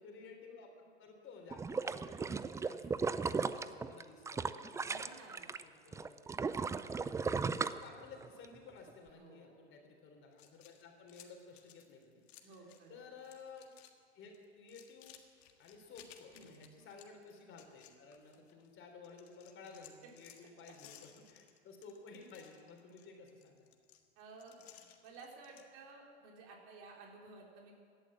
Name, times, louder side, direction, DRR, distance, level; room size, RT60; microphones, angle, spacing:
voice 1, 0.0-5.2 5.6-6.3 7.4-12.5 12.9-13.7 14.1-15.2 15.6-23.7, left 4 dB, 35° left, 3 dB, 3.6 m, -55 dB
sound 1, 1.5-5.6 5.9-8.4 8.9-9.0, right 5 dB, 10° right, 0.4 m, -36 dB
voice 2, 4.8-5.5 9.1-9.5 12.4-13.0 16.3-16.6 19.6-19.8 20.0-20.1 20.7-20.8 24.2-24.5 25.0-27.7, right 3 dB, 55° right, 0 dB, 3.9 m, -55 dB
sound 2, 10.3-12.9 13.2-13.9 14.2-18.7 19.0-25.7, left 10 dB, 70° left, 1.7 m, -60 dB
17.0 x 11.5 x 7.4 m, 2.2 s
hypercardioid pair, 95°, 33 cm